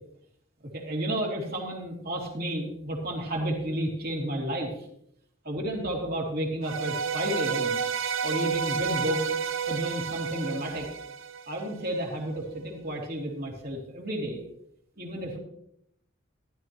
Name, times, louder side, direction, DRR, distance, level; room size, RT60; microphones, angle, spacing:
voice 1, 0.7-4.9 5.4-7.8 8.2-10.9 11.5-14.4 15.0-15.4, right 1 dB, 50° right, -1 dB, 3.2 m, -32 dB
sound 1, 6.6-11.9, right 6 dB, 90° right, 0.7 m, -30 dB
14.5 x 13.0 x 3.1 m, 0.72 s
head